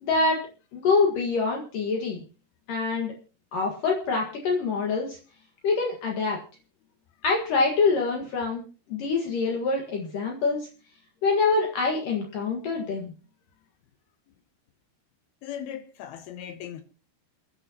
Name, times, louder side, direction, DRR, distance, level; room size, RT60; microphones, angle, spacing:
voice 1, 0.0-0.4 0.7-2.2 2.7-3.1 3.5-5.2 5.6-6.4 7.2-10.7 11.2-13.1, left 4 dB, 60° left, 3.0 m, -25 dB
voice 2, 15.4-16.8, left 9 dB, 75° left, 2.5 m, -38 dB
29.5 x 9.9 x 2.9 m
omnidirectional pair, 4.8 m